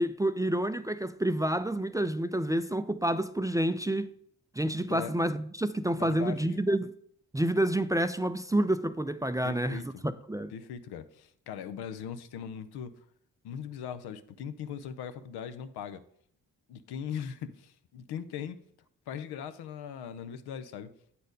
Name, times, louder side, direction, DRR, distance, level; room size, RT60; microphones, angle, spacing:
voice 1, 0.0-4.1 4.6-6.9 7.3-10.5, right 1 dB, 10° right, 0.4 m, -29 dB
voice 2, 6.0-6.4 9.4-10.0 10.5-12.9 13.4-16.0 16.7-18.6 19.1-20.9, left 8 dB, 80° left, 0.7 m, -40 dB
8.2 x 4.3 x 5.1 m
supercardioid pair, 45°, 38 cm